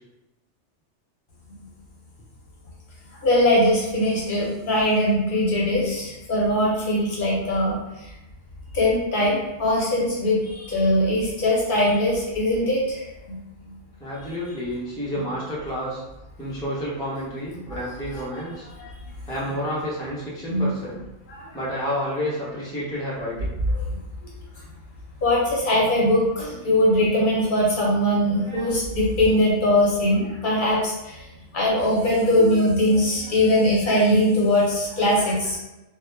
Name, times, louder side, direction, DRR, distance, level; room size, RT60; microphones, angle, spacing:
voice 1, 3.2-7.8 8.7-12.8 20.5-20.7 25.2-30.9 31.5-35.6, left 1 dB, 55° left, -5 dB, 0.7 m, -21 dB
voice 2, 14.0-16.0 16.4-18.7 19.3-21.0 21.5-23.5 26.4-26.7 28.4-28.7, equal, 5° left, -7 dB, 0.3 m, -30 dB
2.3 x 2.1 x 3.0 m, 0.97 s
omnidirectional pair, 1.2 m